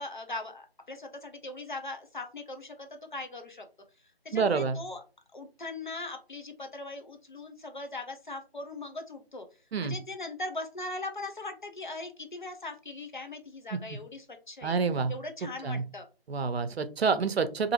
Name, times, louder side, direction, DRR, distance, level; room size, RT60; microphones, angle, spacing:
voice 1, 0.0-3.7 4.2-5.0 5.3-9.5 9.8-14.7 15.1-16.1, left 2 dB, 50° left, 5 dB, 0.4 m, -40 dB
voice 2, 4.3-4.8 9.7-9.9 13.7-13.8 14.6-15.1 15.6-15.8 16.3-17.7, right 5 dB, 80° right, 11 dB, 0.5 m, -27 dB
2.7 x 2.6 x 2.8 m, 0.35 s
figure-of-eight pair, 170°, 31 cm